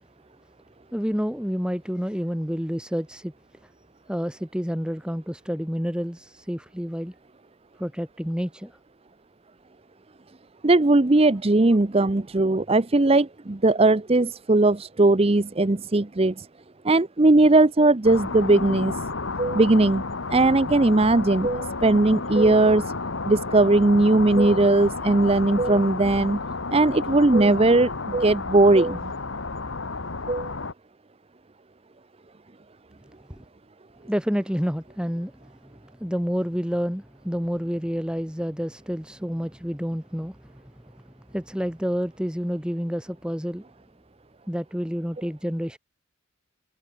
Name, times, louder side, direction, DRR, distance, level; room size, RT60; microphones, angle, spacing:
voice 1, 0.9-3.3 3.6-3.7 4.1-7.1 7.8-8.8 33.3-33.4 34.0-41.0 41.3-43.6 44.5-45.8, equal, 5° right, 1.9 m, -29 dB
voice 2, 10.6-16.5 16.8-19.0 19.4-20.0 20.3-22.8 23.3-26.4 26.7-29.1 30.3-30.5, right 2 dB, 25° right, 0.7 m, -19 dB
sound 1, 18.0-30.7, left 3 dB, 60° left, 1.4 m, -31 dB
head